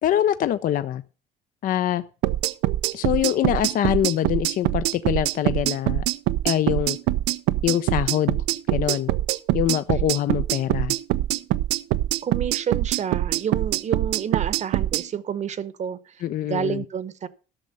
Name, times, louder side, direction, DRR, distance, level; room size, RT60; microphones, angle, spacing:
voice 1, 0.0-1.0 1.6-2.0 2.9-6.0 6.4-7.0 7.6-8.4 8.7-9.1 9.5-10.9 16.2-16.8, left 11 dB, 55° left, 0.5 m, -24 dB
sound 1, 2.2-15.0, right 15 dB, 90° right, 0.5 m, -23 dB
voice 2, 12.2-16.1 16.4-17.3, right 8 dB, 45° right, 0.8 m, -29 dB
12.5 x 6.4 x 5.4 m
cardioid pair, 110°, 17 cm